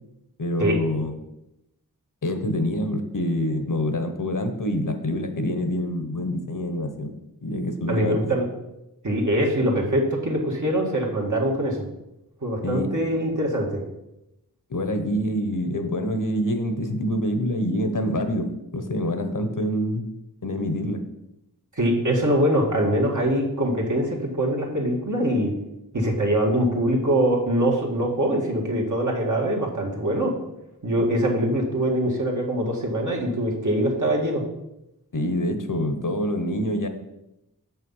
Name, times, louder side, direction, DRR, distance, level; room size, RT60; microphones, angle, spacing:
voice 1, 0.4-1.2 2.2-7.1 7.4-8.2 12.6-12.9 14.7-20.1 20.4-21.0 35.1-36.9, left 1 dB, 55° left, 7 dB, 1.1 m, -26 dB
voice 2, 7.9-8.5 9.0-11.8 12.4-13.8 21.8-25.5 25.9-30.3 30.8-34.4, right 1 dB, 50° right, -1 dB, 1.9 m, -23 dB
7.1 x 5.8 x 5.5 m, 0.89 s
wide cardioid pair, 70°, 38 cm